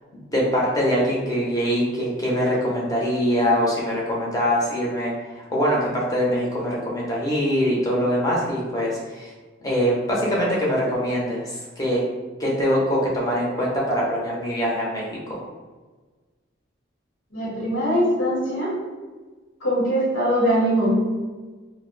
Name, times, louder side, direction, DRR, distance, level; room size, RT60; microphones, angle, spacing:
voice 1, 0.3-9.3 9.6-12.0 12.4-15.4, equal, 20° left, -4 dB, 0.7 m, -23 dB
voice 2, 17.3-18.8 19.6-21.0, equal, 90° left, -7 dB, 0.9 m, -21 dB
2.6 x 2.0 x 3.8 m, 1.3 s
head